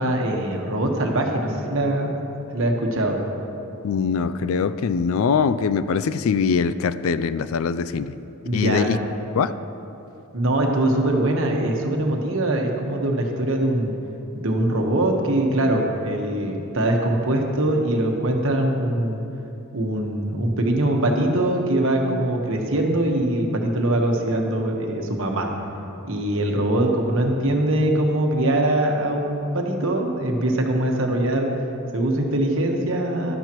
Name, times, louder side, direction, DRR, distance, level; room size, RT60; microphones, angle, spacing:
voice 1, 0.0-2.2 2.5-3.2 8.4-8.9 10.3-13.9 14.3-19.2 19.7-25.5 26.0-31.5 31.9-33.4, right 1 dB, 60° right, 2 dB, 1.2 m, -22 dB
voice 2, 3.8-8.2 8.5-9.0 9.3-9.5, left 6 dB, 65° left, 14 dB, 0.3 m, -22 dB
13.5 x 11.5 x 3.0 m, 2.9 s
head